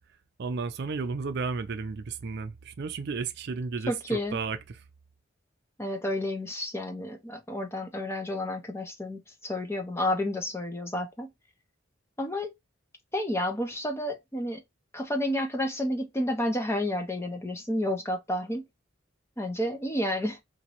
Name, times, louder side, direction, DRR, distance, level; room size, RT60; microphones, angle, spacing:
voice 1, 0.4-4.8, right 4 dB, 55° right, 0.4 m, -33 dB
voice 2, 3.9-4.4 5.8-11.3 12.2-12.5 13.1-14.6 14.9-18.7 19.4-20.4, left 1 dB, 15° left, 0.5 m, -30 dB
3.0 x 2.6 x 2.8 m
head